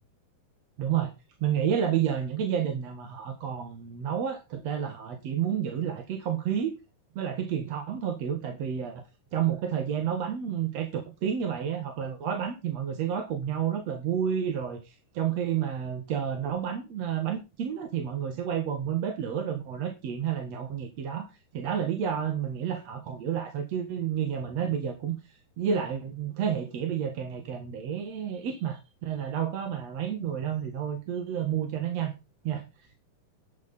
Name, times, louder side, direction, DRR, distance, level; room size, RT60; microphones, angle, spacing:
voice 1, 0.8-1.1 1.4-6.8 7.2-9.0 9.3-21.3 21.5-25.2 25.6-32.1 32.4-32.6, right 8 dB, 55° right, 5 dB, 2.6 m, -30 dB
12.0 x 9.6 x 4.2 m, 0.27 s
omnidirectional pair, 3.8 m